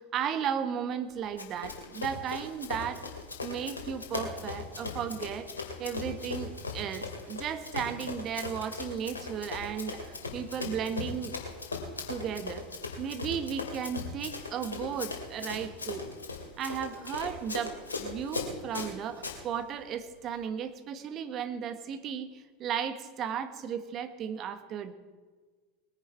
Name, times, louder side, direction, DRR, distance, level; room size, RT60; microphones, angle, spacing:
voice 1, 0.0-3.1 3.4-5.5 5.8-11.3 12.1-12.6 13.0-16.0 16.6-24.9, right 8 dB, 40° right, 10 dB, 1.4 m, -35 dB
Run, 1.4-19.4, left 4 dB, 85° left, 2.4 m, -38 dB
20.5 x 10.5 x 4.5 m, 1.4 s
figure-of-eight pair, 85°, 0 cm